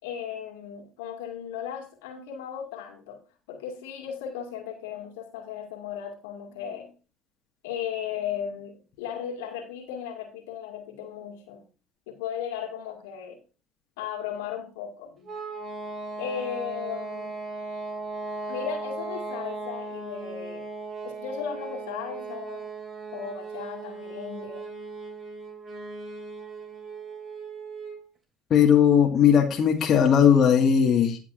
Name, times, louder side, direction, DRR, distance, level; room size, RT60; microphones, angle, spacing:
voice 1, 0.0-3.2 3.5-6.9 7.6-11.7 12.1-13.4 14.0-15.3 16.2-17.4 18.5-20.6 21.0-22.7 23.1-24.7, left 8 dB, 70° left, 3 dB, 2.2 m, -36 dB
sound 1, 15.2-28.0, right 3 dB, 35° right, 2.6 m, -37 dB
voice 2, 28.5-31.2, left 8 dB, 45° left, 1 dB, 1.7 m, -18 dB
17.5 x 5.9 x 2.5 m, 0.34 s
hypercardioid pair, 65°, 0 cm